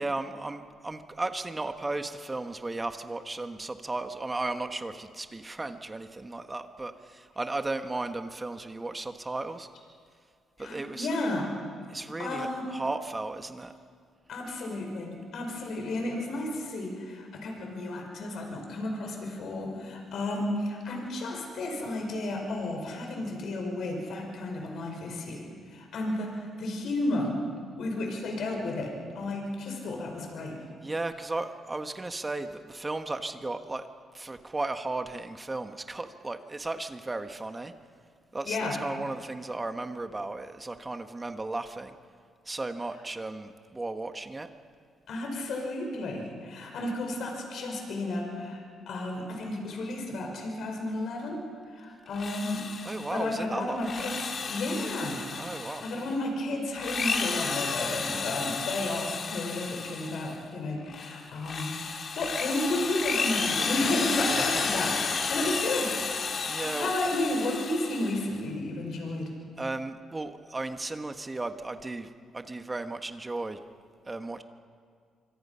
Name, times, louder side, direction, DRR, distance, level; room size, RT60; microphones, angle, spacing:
voice 1, 0.0-9.7 10.6-11.1 11.9-13.7 30.8-33.9 34.1-37.7 38.3-41.9 42.5-44.5 52.8-54.1 55.4-55.8 64.3-64.8 66.5-66.9 69.6-73.6 74.1-74.4, right 2 dB, 20° right, 7 dB, 1.4 m, -35 dB
voice 2, 10.6-11.5 12.2-12.6 14.3-27.4 27.8-30.6 38.5-38.8 45.1-48.6 48.9-51.4 51.7-52.7 53.1-54.2 54.5-65.0 65.3-66.3 66.6-69.3, left 2 dB, 65° left, 2 dB, 5.4 m, -32 dB
Drill, 52.1-53.2 53.7-56.1 56.7-60.4 60.9-68.3, left 5 dB, 50° left, 2.4 m, -32 dB
25.5 x 25.5 x 5.7 m, 2.1 s
cardioid pair, 90°, 0 cm